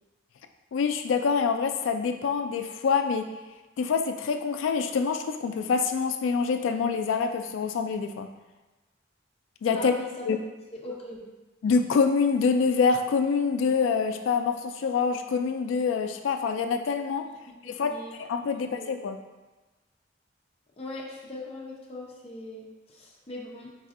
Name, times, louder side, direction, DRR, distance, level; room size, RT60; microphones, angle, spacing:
voice 1, 0.7-3.3 3.8-8.3 9.6-9.9 10.3-10.4 11.6-17.2 17.6-17.9 18.2-19.2, left 5 dB, 85° left, 7 dB, 0.3 m, -26 dB
voice 2, 9.7-10.3 10.7-11.3 17.6-18.1 18.5-18.9 20.8-23.7, left 1 dB, 35° left, -3 dB, 0.5 m, -40 dB
4.0 x 2.6 x 2.5 m, 1.1 s
head